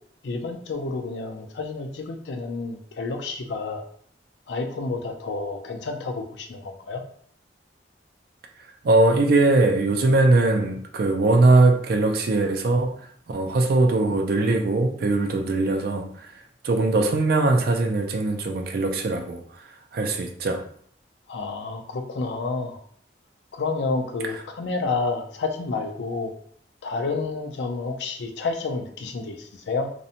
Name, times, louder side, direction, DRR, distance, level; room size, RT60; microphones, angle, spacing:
voice 1, 0.2-3.8 4.5-7.0 21.3-22.8 23.5-26.3 26.8-29.9, left 3 dB, 75° left, 0.4 m, -30 dB
voice 2, 8.8-12.9 13.3-16.3 16.6-19.4 19.9-20.6, right 2 dB, 55° right, 0.4 m, -21 dB
2.5 x 2.1 x 2.7 m
head